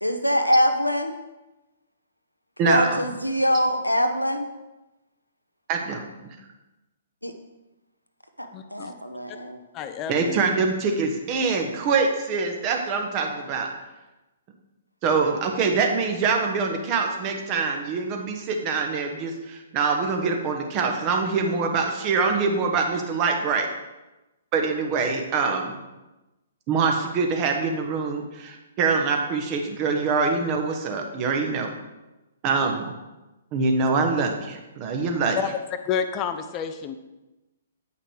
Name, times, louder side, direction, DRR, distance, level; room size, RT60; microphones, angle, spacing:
voice 1, 0.0-1.1 2.6-4.5 7.2-7.3 8.4-9.6, equal, 90° left, 7 dB, 0.9 m, -23 dB
voice 2, 2.6-3.0 5.7-6.0 10.1-13.7 15.0-23.7 24.5-25.7 26.7-31.7 32.4-32.9 33.5-35.4, right 4 dB, 30° right, 3 dB, 1.2 m, -24 dB
voice 3, 8.5-8.9 9.7-10.4 35.3-35.5 35.8-36.9, left 7 dB, 25° left, 9 dB, 0.6 m, -29 dB
8.9 x 5.7 x 4.8 m, 1.0 s
figure-of-eight pair, 120°, 0 cm